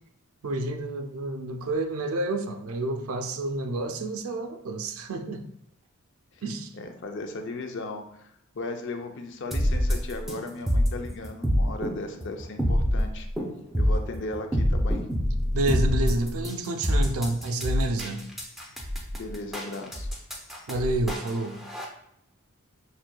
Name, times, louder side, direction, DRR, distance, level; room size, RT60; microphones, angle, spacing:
voice 1, 0.4-5.4 6.4-6.7 15.5-18.2 20.7-21.6, right 2 dB, 70° right, 6 dB, 0.4 m, -29 dB
voice 2, 6.7-13.3 13.8-15.0 19.1-20.1, left 2 dB, 55° left, 5 dB, 0.5 m, -36 dB
sound 1, 9.5-21.8, equal, ahead, 0.5 m, -26 dB
5.9 x 2.7 x 2.2 m, 0.76 s
head